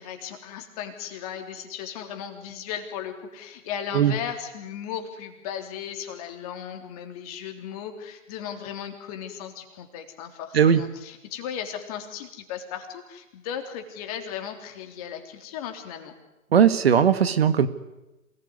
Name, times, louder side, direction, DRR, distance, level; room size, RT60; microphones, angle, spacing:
voice 1, 0.0-16.1, left 8 dB, 25° left, 5 dB, 3.5 m, -36 dB
voice 2, 16.5-17.7, right 8 dB, 50° right, 13 dB, 1.7 m, -18 dB
27.5 x 20.0 x 9.7 m, 0.99 s
figure-of-eight pair, 140°, 40 cm